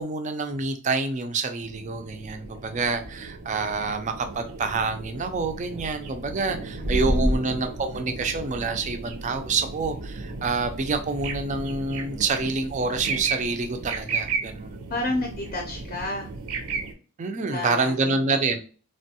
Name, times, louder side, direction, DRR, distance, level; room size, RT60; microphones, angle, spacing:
voice 1, 0.0-14.8 17.2-18.6, right 4 dB, 30° right, 0.3 m, -27 dB
sound 1, 1.6-16.9, right 4 dB, 85° right, 0.5 m, -35 dB
voice 2, 6.8-7.3 14.9-16.3 17.5-18.1, left 2 dB, 40° left, 0.5 m, -30 dB
sound 2, 6.8-7.4, equal, 5° left, 0.7 m, -23 dB
3.2 x 2.2 x 2.7 m
head